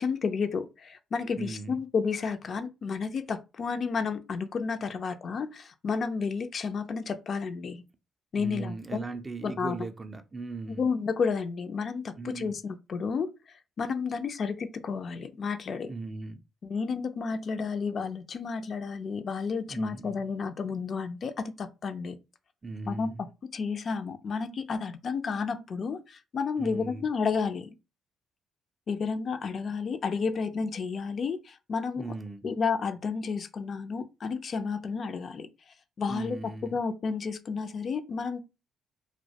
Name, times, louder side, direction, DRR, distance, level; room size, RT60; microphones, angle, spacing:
voice 1, 0.0-7.8 8.3-9.1 9.4-9.8 10.7-13.3 13.8-15.9 16.6-22.2 22.9-23.1 23.5-27.7 28.9-32.1 32.4-35.5 36.0-36.4 36.7-38.4, left 5 dB, 50° left, 0.3 m, -31 dB
voice 2, 1.4-1.8 8.4-10.9 12.2-12.6 15.8-16.4 19.7-20.2 22.6-23.3 26.6-27.1 32.0-32.5 36.1-36.8, right 3 dB, 25° right, 0.4 m, -38 dB
2.2 x 2.0 x 2.7 m
cardioid pair, 90°, 0 cm